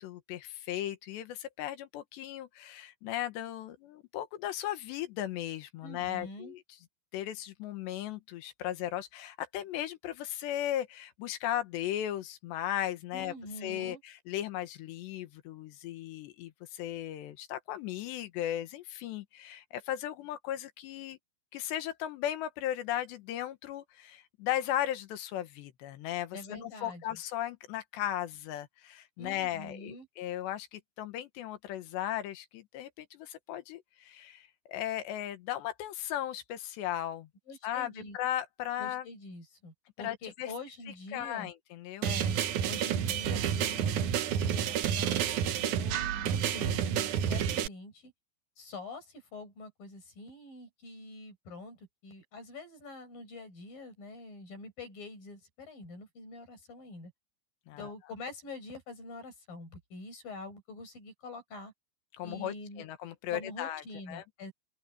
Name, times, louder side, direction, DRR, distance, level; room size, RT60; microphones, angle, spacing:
voice 1, 0.0-6.6 7.1-13.3 13.6-21.2 21.5-37.3 37.6-39.1 40.0-40.5 41.1-42.1 57.7-57.9 62.2-63.8 64.1-64.2, left 12 dB, 90° left, 3.6 m, -36 dB
voice 2, 5.8-6.5 13.1-14.0 26.3-27.2 29.2-30.1 37.5-38.2 38.8-41.5 42.0-42.4 42.7-45.3 45.6-48.1 48.6-57.1 57.8-61.7 62.2-62.8 63.3-64.5, left 2 dB, 55° left, 9.3 m, -45 dB
sound 1, 42.0-47.7, right 9 dB, 65° right, 2.1 m, -30 dB
open air
omnidirectional pair, 4.9 m